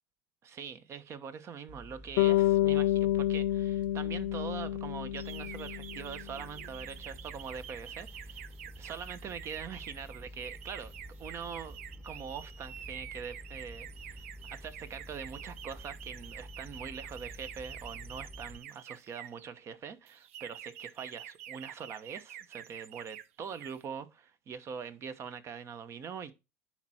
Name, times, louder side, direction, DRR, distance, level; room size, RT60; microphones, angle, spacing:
voice 1, 0.4-10.9 11.2-11.8 12.0-26.3, right 6 dB, 40° right, 1.1 m, -43 dB
sound 1, 1.7-18.6, equal, 15° right, 1.4 m, -49 dB
Bass guitar, 2.2-6.3, left 14 dB, 70° left, 0.6 m, -29 dB
sound 2, 5.2-19.5 20.1-23.3 23.5-23.8, right 10 dB, 85° right, 0.5 m, -48 dB
10.5 x 4.4 x 4.4 m
supercardioid pair, 95°, 7 cm